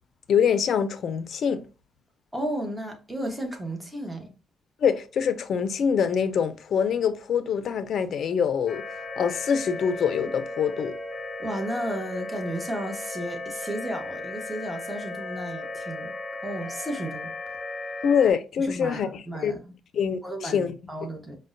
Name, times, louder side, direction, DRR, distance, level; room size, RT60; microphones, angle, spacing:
voice 1, 0.3-1.6 4.8-11.0 18.0-19.6 19.9-20.7, left 7 dB, 60° left, 0.5 m, -25 dB
voice 2, 2.3-4.3 11.4-16.1 16.4-17.3 18.6-19.6 20.2-21.4, right 1 dB, 10° right, 1.0 m, -33 dB
sound 1, 8.7-18.3, left 2 dB, 20° left, 0.9 m, -36 dB
5.2 x 2.1 x 2.5 m
cardioid pair, 90°, 0 cm